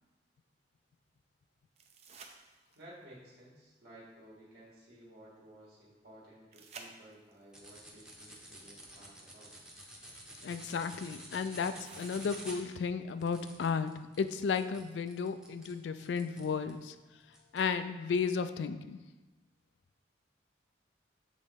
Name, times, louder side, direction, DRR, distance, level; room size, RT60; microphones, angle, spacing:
sound 1, 1.7-3.0 6.5-7.5 9.4-9.5 11.8-12.8 15.8-15.9, right 4 dB, 35° right, 0.5 m, -53 dB
voice 1, 2.7-9.5, right 1 dB, 60° right, -7 dB, 1.7 m, -55 dB
sound 2, 7.5-16.8 17.3-17.7, right 1 dB, 5° right, 0.8 m, -50 dB
voice 2, 10.4-16.9 17.5-19.0, left 5 dB, 70° left, 11 dB, 0.3 m, -34 dB
7.5 x 3.9 x 3.5 m, 1.2 s
head